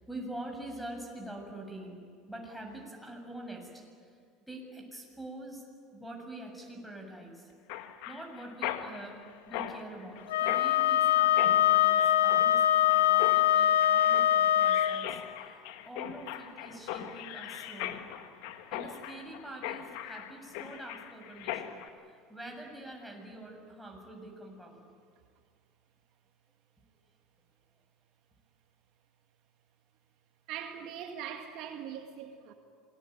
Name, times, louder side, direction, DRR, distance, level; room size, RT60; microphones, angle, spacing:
voice 1, 0.0-2.0 2.3-4.1 4.5-5.6 5.9-7.5 8.1-15.2 15.5-18.0 18.7-21.8 22.1-24.8, right 1 dB, ahead, 7.3 m, -45 dB
Mechanisms, 7.7-21.9, left 11 dB, 70° left, 1.8 m, -40 dB
Wind instrument woodwind instrument, 10.3-15.0, left 11 dB, 85° left, 1.1 m, -23 dB
voice 2, 30.5-32.5, right 9 dB, 60° right, 2.0 m, -41 dB
26.5 x 20.0 x 9.5 m
hypercardioid pair, 80°, 0 cm